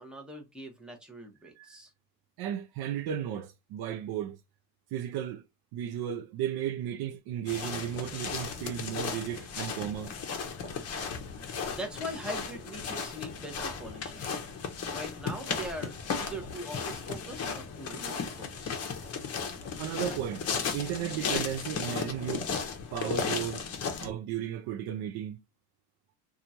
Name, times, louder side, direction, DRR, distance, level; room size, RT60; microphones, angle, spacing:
voice 1, 0.0-1.9 11.7-14.3 14.8-18.8, right 1 dB, ahead, 0.7 m, -41 dB
voice 2, 2.4-4.4 4.9-5.4 5.7-10.1 19.8-20.5 20.7-22.5 22.9-23.7 24.0-25.4, right 10 dB, 60° right, 0.5 m, -34 dB
sound 1, 7.5-24.1, left 6 dB, 35° left, 0.7 m, -35 dB
2.9 x 2.4 x 2.6 m
cardioid pair, 125°, 45 cm